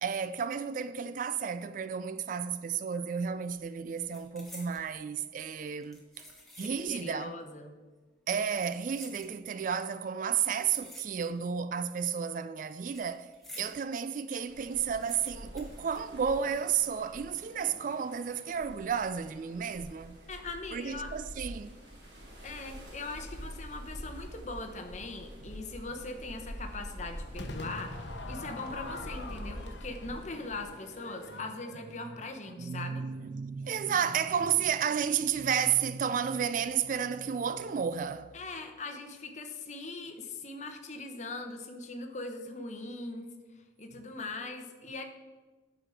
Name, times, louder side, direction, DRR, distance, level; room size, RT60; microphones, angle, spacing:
voice 1, 0.0-6.2 6.6-7.4 8.3-13.3 13.6-20.2 20.7-21.7 32.0-32.1 32.6-38.3, right 7 dB, 45° right, 0.3 m, -32 dB
sound 1, 2.9-3.2 3.5-4.9 5.7-7.1 7.4-7.5 8.3-9.7 10.4-11.6 11.9-13.8 14.2-14.3 14.5-16.6 16.9-17.0 17.7-18.1 18.5-18.7, left 1 dB, ahead, 1.3 m, -52 dB
voice 2, 6.6-7.7 20.3-21.1 22.4-33.0 38.3-43.3 43.8-45.0, left 3 dB, 40° left, 0.9 m, -41 dB
sound 2, 14.5-31.4, equal, 65° right, 2.2 m, -46 dB
Crowd / Fireworks, 27.4-32.6, left 2 dB, 65° left, 0.9 m, -44 dB
8.8 x 5.0 x 6.4 m
head